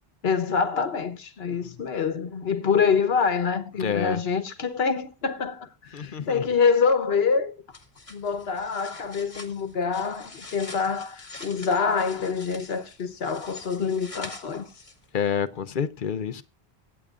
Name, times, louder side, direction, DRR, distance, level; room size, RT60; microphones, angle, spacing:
voice 1, 0.2-7.6 8.1-14.7, left 5 dB, 75° left, 1.3 m, -26 dB
voice 2, 3.8-4.2 5.9-6.4 15.1-16.4, left 7 dB, 55° left, 0.9 m, -28 dB
sound 1, 7.7-15.2, left 2 dB, 35° left, 1.7 m, -45 dB
24.0 x 8.5 x 2.4 m
omnidirectional pair, 1.0 m